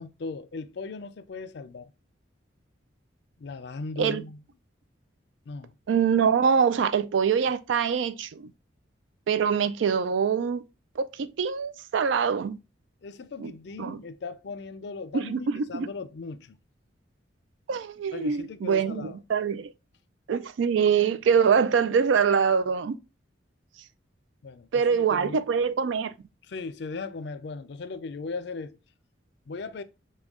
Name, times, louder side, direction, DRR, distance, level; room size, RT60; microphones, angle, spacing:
voice 1, 0.0-1.9 3.4-4.4 5.5-5.7 13.0-16.6 18.1-19.2 24.4-25.4 26.5-28.8 29.5-29.8, left 4 dB, 60° left, 0.4 m, -38 dB
voice 2, 5.9-8.5 9.3-10.6 11.0-12.6 13.4-13.5 13.8-14.0 15.1-15.9 17.7-19.7 20.3-23.0 24.7-26.1, right 6 dB, 80° right, 0.4 m, -24 dB
6.0 x 2.2 x 3.5 m
head